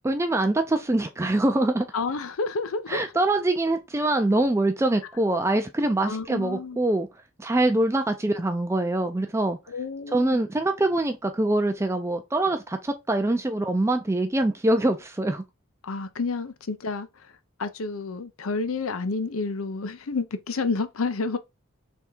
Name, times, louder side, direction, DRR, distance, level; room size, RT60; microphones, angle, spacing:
voice 1, 0.0-1.9 2.9-7.1 7.4-9.6 10.1-15.4, right 2 dB, 15° right, 0.4 m, -24 dB
voice 2, 1.9-3.0 6.0-6.8 9.7-10.4 15.8-17.3 17.6-21.4, left 4 dB, 80° left, 0.6 m, -30 dB
3.5 x 3.5 x 4.3 m
head